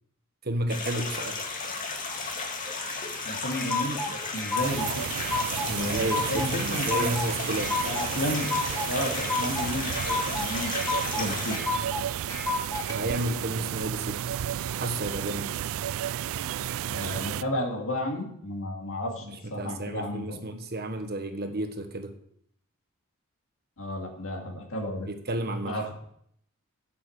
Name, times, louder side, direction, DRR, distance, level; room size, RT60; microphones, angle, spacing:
voice 1, 0.4-1.4 5.7-7.7 12.9-14.2 14.8-15.5 19.3-22.1 25.1-25.9, right 1 dB, 45° right, 7 dB, 1.3 m, -32 dB
sound 1, 0.7-11.6, left 4 dB, 35° left, 2.1 m, -34 dB
sound 2, 2.9-12.9, left 3 dB, 15° left, 1.6 m, -32 dB
voice 2, 3.2-4.9 5.7-7.2 7.8-8.5 8.9-11.6 16.9-20.4 23.8-25.1 25.6-25.9, left 1 dB, 65° left, 1 dB, 2.3 m, -33 dB
sound 3, 4.6-17.4, right 10 dB, 60° right, 0.3 m, -32 dB
8.4 x 7.6 x 7.9 m, 0.70 s
head